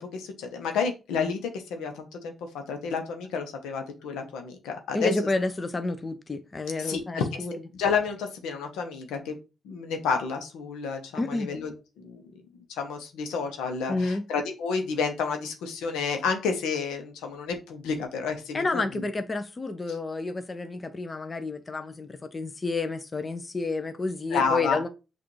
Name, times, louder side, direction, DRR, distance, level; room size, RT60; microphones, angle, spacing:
voice 1, 0.0-2.3 2.7-5.1 6.8-7.2 7.7-9.4 9.6-12.3 12.7-19.0 24.3-24.8, left 5 dB, 90° left, 0.8 m, -30 dB
voice 2, 4.9-7.5 11.2-11.5 13.9-14.2 18.5-24.9, left 3 dB, 35° left, 0.6 m, -30 dB
5.8 x 2.5 x 3.2 m
supercardioid pair, 60°, 0 cm